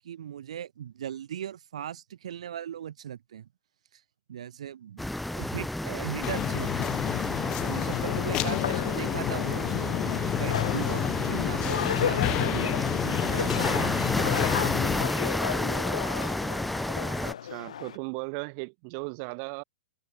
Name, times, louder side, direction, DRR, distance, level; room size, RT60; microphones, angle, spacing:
voice 1, 0.0-3.5 3.9-4.0 4.3-7.0 7.7-14.0, right 10 dB, 70° right, 3.3 m, -39 dB
sound 1, 5.0-17.3, left 1 dB, ahead, 2.1 m, -31 dB
sound 2, 6.2-15.1, left 18 dB, 20° left, 0.5 m, -30 dB
sound 3, 7.6-18.0, left 9 dB, 75° left, 5.1 m, -35 dB
voice 2, 17.2-19.6, right 40 dB or more, 30° right, 2.3 m, -37 dB
hypercardioid pair, 170°, 4 cm